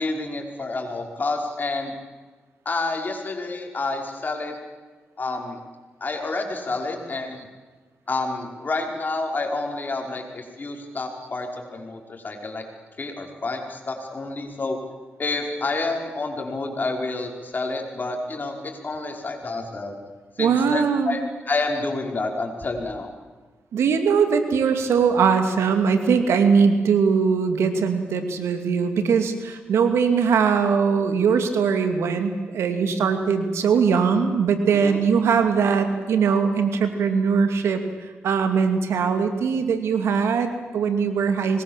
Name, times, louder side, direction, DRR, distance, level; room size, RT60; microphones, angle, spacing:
voice 1, 0.0-1.9 2.7-4.5 5.2-5.6 6.0-7.4 8.1-12.6 13.0-14.8 15.2-20.0 20.4-21.2 21.5-23.1 34.7-35.0, left 3 dB, 45° left, 2 dB, 5.4 m, -29 dB
voice 2, 20.4-21.2 23.7-37.8 38.2-41.6, right 6 dB, 85° right, 7 dB, 2.5 m, -21 dB
26.0 x 21.5 x 7.6 m, 1.3 s
cardioid pair, 60°, 4 cm